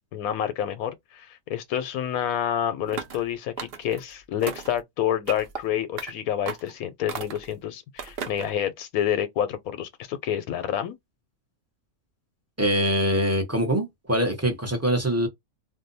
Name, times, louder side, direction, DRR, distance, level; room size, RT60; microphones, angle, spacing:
voice 1, 0.1-11.0, left 10 dB, 85° left, 1.1 m, -28 dB
sound 1, 2.9-3.2 3.6-4.0 4.4-4.8 5.3-5.6 6.0-6.1 6.5-6.7 7.1-7.5 8.0-8.5, right 6 dB, 55° right, 0.7 m, -35 dB
voice 2, 12.6-15.3, equal, 15° right, 0.7 m, -23 dB
2.6 x 2.1 x 3.9 m
omnidirectional pair, 1.5 m